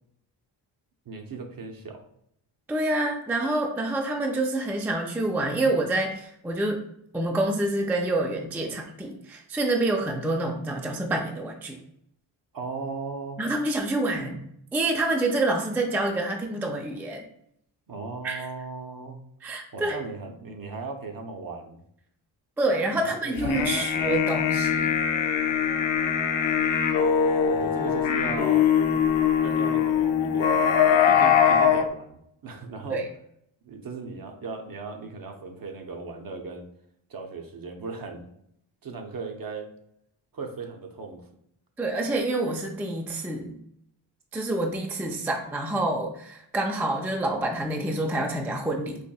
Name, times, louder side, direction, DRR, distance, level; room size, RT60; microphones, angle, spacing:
voice 1, 1.1-2.1 12.5-13.4 17.9-19.2 19.7-21.8 23.0-24.0 27.5-29.0 29.4-33.0 33.6-36.7 37.1-38.3 38.8-39.7 40.3-41.3, right 4 dB, 45° right, 4 dB, 0.7 m, -37 dB
voice 2, 2.7-6.8 7.1-11.8 13.4-14.4 14.7-17.3 18.2-18.5 19.4-20.0 22.6-24.9 32.9-33.1 41.8-43.6 44.3-49.0, right 2 dB, 5° right, 2 dB, 0.3 m, -27 dB
sound 1, 23.4-31.8, left 8 dB, 65° left, 0.5 m, -22 dB
4.2 x 2.6 x 2.3 m, 0.73 s
cardioid pair, 60°, 50 cm